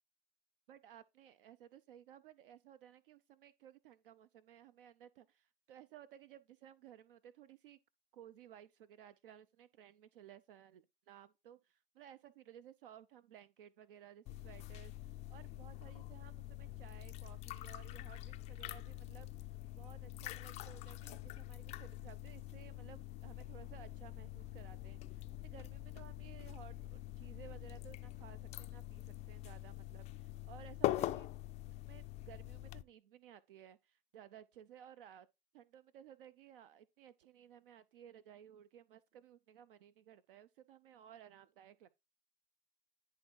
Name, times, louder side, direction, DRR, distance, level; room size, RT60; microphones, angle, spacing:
voice 1, 0.7-7.8 8.1-19.3 19.8-31.3 31.7-35.3 35.5-41.9, right 10 dB, 65° right, 0.6 m, -58 dB
sound 1, 14.3-32.8, left 15 dB, 25° left, 0.3 m, -44 dB
10.5 x 3.5 x 4.4 m
hypercardioid pair, 110°, 29 cm